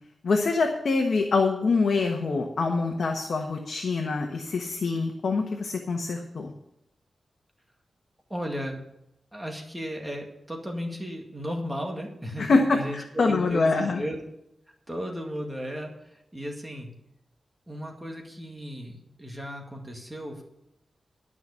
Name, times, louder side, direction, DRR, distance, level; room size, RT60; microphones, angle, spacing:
voice 1, 0.2-6.5 12.4-14.0, left 3 dB, 65° left, 3 dB, 1.3 m, -25 dB
voice 2, 8.3-8.8 9.3-14.2 14.9-16.9 17.7-20.4, equal, 10° right, 1 dB, 2.1 m, -35 dB
12.5 x 6.0 x 8.3 m, 0.83 s
wide cardioid pair, 125°, 0 cm